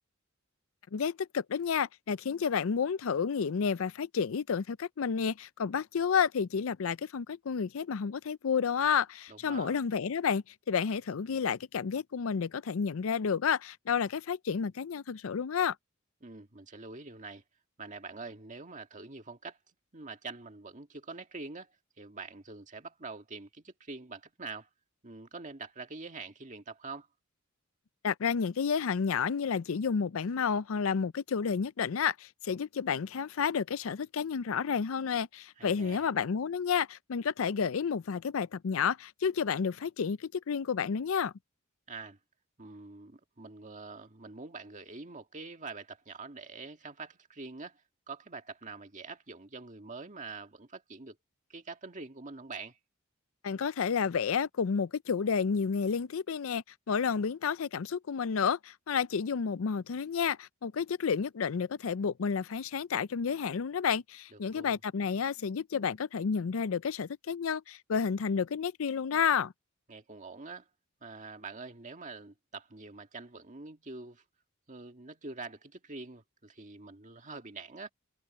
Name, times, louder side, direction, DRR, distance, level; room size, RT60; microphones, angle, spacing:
voice 1, 0.9-15.8 28.0-41.3 53.4-69.5, left 6 dB, 70° left, 0.5 m, -31 dB
voice 2, 9.3-9.8 16.2-17.4 17.8-19.6 19.9-24.7 25.0-27.1 35.6-36.1 41.9-42.2 42.6-47.8 48.1-51.2 51.5-52.8 64.3-64.8 69.9-70.7 71.0-74.2 74.7-77.9, right 3 dB, 35° right, 1.8 m, -45 dB
open air
head